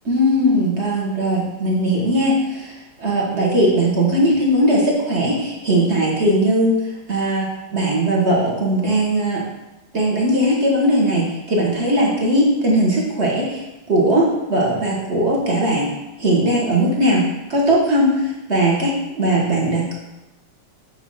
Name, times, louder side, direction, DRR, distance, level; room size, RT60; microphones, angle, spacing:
voice 1, 0.1-6.7 7.1-9.4 9.9-15.9 16.2-19.9, right 1 dB, 35° right, -3 dB, 1.5 m, -19 dB
7.7 x 3.9 x 5.6 m, 1.0 s
omnidirectional pair, 2.4 m